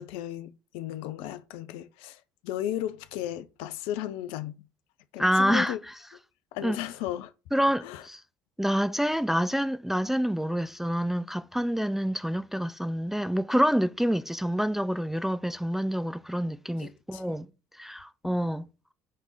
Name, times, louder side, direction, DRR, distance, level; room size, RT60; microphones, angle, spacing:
voice 1, 0.0-4.7 5.1-5.8 6.5-7.3 7.8-8.0 16.8-17.2, left 12 dB, 60° left, 0.5 m, -35 dB
voice 2, 5.2-5.8 6.6-6.8 7.5-8.2 8.6-17.5 17.7-18.7, equal, 5° right, 0.4 m, -27 dB
7.5 x 3.4 x 4.0 m
figure-of-eight pair, 55°, 11 cm